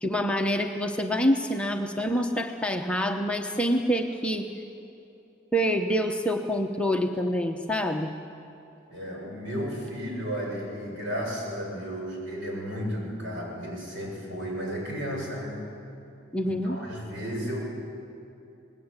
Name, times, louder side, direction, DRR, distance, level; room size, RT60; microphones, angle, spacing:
voice 1, 0.0-4.4 5.5-8.1 16.3-16.8, equal, 5° left, 2 dB, 0.9 m, -26 dB
voice 2, 8.9-15.6 16.4-17.6, equal, 60° right, -1 dB, 7.2 m, -33 dB
27.0 x 20.0 x 8.2 m, 2.7 s
head